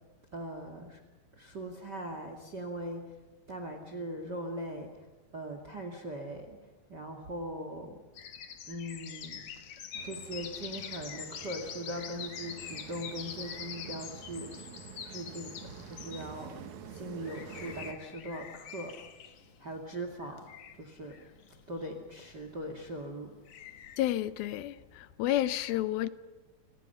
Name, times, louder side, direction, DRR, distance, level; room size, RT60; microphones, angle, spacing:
voice 1, 0.3-1.0 1.4-3.1 3.5-4.9 5.3-6.6 6.9-8.0 8.7-9.4 10.0-14.5 15.1-18.9 19.6-20.5 20.8-21.2 21.7-23.3, right 1 dB, 35° right, 2.3 m, -40 dB
sound 1, 8.2-24.0, left 8 dB, 60° left, 2.9 m, -45 dB
sound 2, 9.9-17.9, right 7 dB, 60° right, 2.7 m, -48 dB
voice 2, 24.0-26.1, left 13 dB, 80° left, 2.8 m, -30 dB
29.5 x 25.5 x 5.7 m
omnidirectional pair, 4.3 m